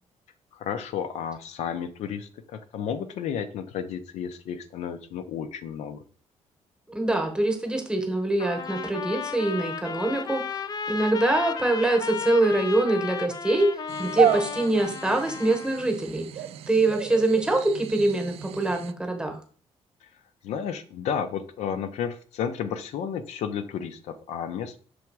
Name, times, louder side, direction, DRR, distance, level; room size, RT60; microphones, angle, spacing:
voice 1, 0.5-6.0 20.4-24.8, left 8 dB, 80° left, 10 dB, 0.6 m, -32 dB
voice 2, 6.9-10.6 10.9-13.7 14.0-16.3 16.7-19.4, right 2 dB, 5° right, 4 dB, 1.0 m, -24 dB
Trumpet, 8.4-15.9, left 6 dB, 35° left, 0.4 m, -34 dB
sound 1, 13.9-18.9, right 10 dB, 60° right, 0.4 m, -32 dB
6.2 x 3.4 x 4.6 m, 0.41 s
cardioid pair, 160°, 11 cm